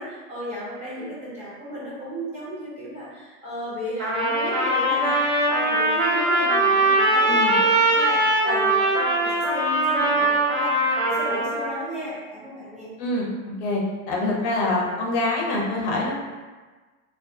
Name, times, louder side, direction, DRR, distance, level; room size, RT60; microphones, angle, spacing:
voice 1, 0.0-12.9, equal, 15° right, -8 dB, 0.5 m, -34 dB
Trumpet, 4.0-11.7, right 1 dB, 45° right, 1.1 m, -21 dB
voice 2, 7.3-7.6 13.0-13.8 14.1-16.2, left 2 dB, 60° left, -2 dB, 0.7 m, -25 dB
2.2 x 2.2 x 2.7 m, 1.3 s
supercardioid pair, 135°, 40 cm